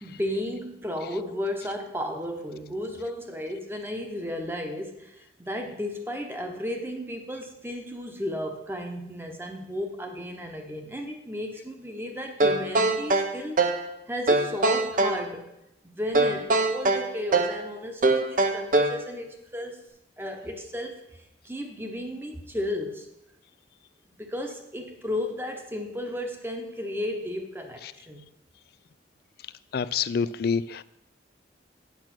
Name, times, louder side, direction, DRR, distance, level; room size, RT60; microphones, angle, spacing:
voice 1, 0.0-13.7 14.1-15.5 15.8-19.8 20.2-23.1 24.2-28.2, left 1 dB, 10° right, 4 dB, 0.9 m, -34 dB
sound 1, 12.4-13.9 14.3-15.2 16.1-17.6 18.0-19.0, right 2 dB, 45° right, 0.7 m, -23 dB
voice 2, 29.7-30.8, left 6 dB, 55° left, 17 dB, 0.3 m, -27 dB
8.4 x 6.0 x 6.0 m, 0.86 s
head